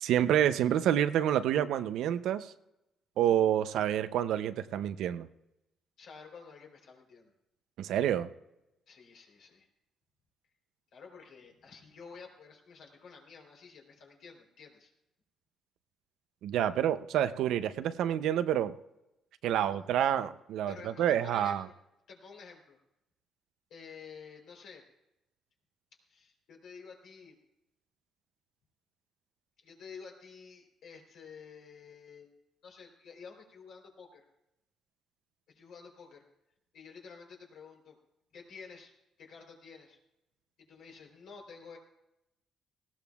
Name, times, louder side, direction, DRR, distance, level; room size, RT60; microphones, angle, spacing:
voice 1, 0.0-2.5 3.2-5.3 7.8-8.3 16.4-18.8 19.4-21.7, right 10 dB, 85° right, 12 dB, 0.6 m, -28 dB
voice 2, 6.0-7.3 8.9-9.7 10.9-14.9 19.5-19.8 20.7-21.7 22.1-22.8 23.7-24.8 26.1-27.4 29.6-32.3 32.6-34.2 35.5-36.2 36.7-38.0 38.3-38.9 39.2-40.0 40.6-41.8, left 5 dB, 75° left, 0 dB, 3.6 m, -51 dB
19.0 x 15.5 x 2.4 m, 0.90 s
cardioid pair, 90°, 0 cm